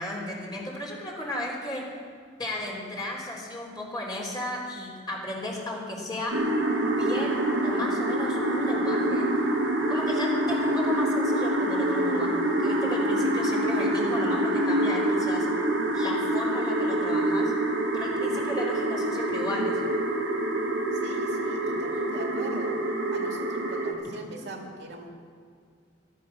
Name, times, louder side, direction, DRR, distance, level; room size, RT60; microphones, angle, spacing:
voice 1, 0.0-1.8 2.4-6.3 7.0-9.3 9.9-15.5 15.9-17.5 17.9-19.8 24.4-24.5, left 1 dB, 20° left, -3 dB, 3.7 m, -35 dB
sound 1, 6.3-23.9, right 1 dB, 90° right, 2.4 m, -26 dB
voice 2, 20.9-22.8 23.1-25.1, right 2 dB, 65° right, 2 dB, 2.1 m, -41 dB
15.0 x 13.0 x 6.5 m, 2.2 s
head